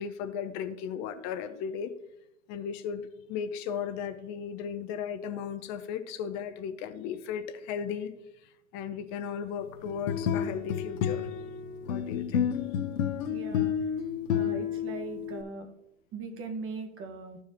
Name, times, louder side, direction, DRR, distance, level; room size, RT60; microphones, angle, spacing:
voice 1, 0.0-1.9 2.5-8.1 8.7-11.3 11.8-12.5, left 7 dB, 45° left, 9 dB, 0.8 m, -36 dB
sound 1, 9.9-15.4, left 8 dB, 75° left, 1.1 m, -30 dB
voice 2, 13.2-13.7 14.3-15.7 16.1-17.4, right 4 dB, 35° right, 6 dB, 1.5 m, -39 dB
14.0 x 4.7 x 2.9 m, 0.85 s
hypercardioid pair, 110°, 39 cm